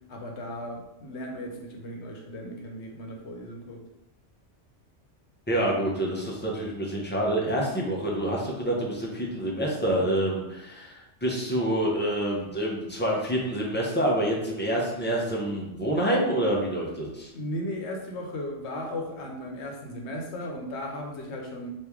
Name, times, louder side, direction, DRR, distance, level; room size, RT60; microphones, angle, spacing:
voice 1, 0.1-3.8 17.3-21.7, left 1 dB, 70° left, 1 dB, 0.9 m, -36 dB
voice 2, 5.5-17.3, right 1 dB, 15° left, -3 dB, 0.4 m, -27 dB
3.0 x 2.6 x 3.5 m, 0.91 s
omnidirectional pair, 1.3 m